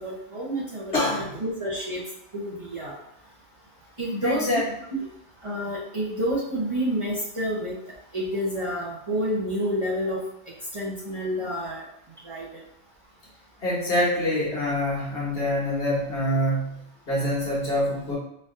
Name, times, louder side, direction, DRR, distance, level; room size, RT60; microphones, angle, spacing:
voice 1, 0.0-2.0 2.3-3.0 4.0-4.4 5.4-7.7 8.1-10.2 10.7-11.9 12.2-12.5, equal, 30° right, -7 dB, 0.8 m, -29 dB
voice 2, 0.9-1.3 4.2-4.7 13.6-16.8 17.1-18.1, left 1 dB, 60° left, -6 dB, 1.4 m, -25 dB
4.2 x 2.6 x 2.5 m, 0.79 s
omnidirectional pair, 1.2 m